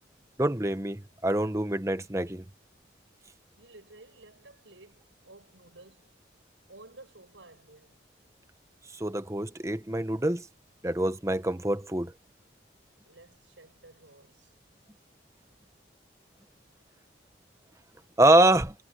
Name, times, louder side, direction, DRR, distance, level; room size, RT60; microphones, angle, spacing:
voice 1, 0.4-2.4 8.9-10.5 10.8-12.1 18.2-18.7, right 1 dB, 15° right, 1.0 m, -25 dB
voice 2, 3.6-6.2 6.7-8.0 13.1-14.6, right 2 dB, 90° right, 7.6 m, -53 dB
head